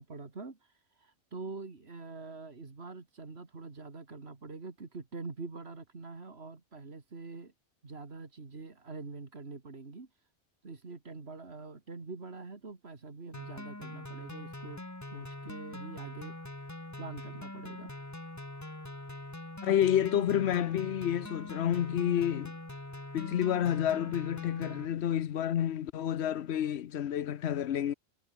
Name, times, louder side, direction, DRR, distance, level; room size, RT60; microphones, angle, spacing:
voice 1, 0.0-7.5 7.8-10.3 10.6-16.4 17.0-17.9, right 3 dB, 80° right, 2.7 m, -45 dB
sound 1, 13.3-24.9, left 1 dB, 15° left, 1.5 m, -43 dB
voice 2, 19.6-22.5 23.1-27.9, left 10 dB, 85° left, 1.0 m, -29 dB
omnidirectional pair, 1.1 m